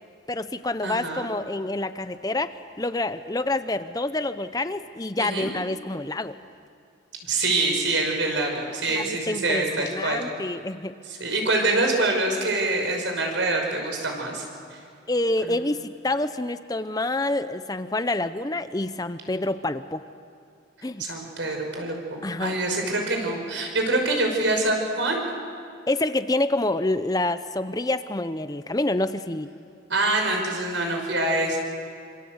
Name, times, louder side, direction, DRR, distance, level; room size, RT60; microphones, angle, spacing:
voice 1, 0.3-6.4 8.9-10.9 15.1-20.0 20.8-21.0 22.2-22.5 25.9-29.5, left 2 dB, 20° left, 11 dB, 0.7 m, -27 dB
voice 2, 0.8-1.3 5.2-5.5 7.2-10.2 11.1-14.4 14.7-14.8 15.4-15.5 21.0-25.2 29.9-31.6, right 2 dB, 80° right, 2 dB, 5.6 m, -25 dB
26.5 x 26.0 x 8.0 m, 2.5 s
head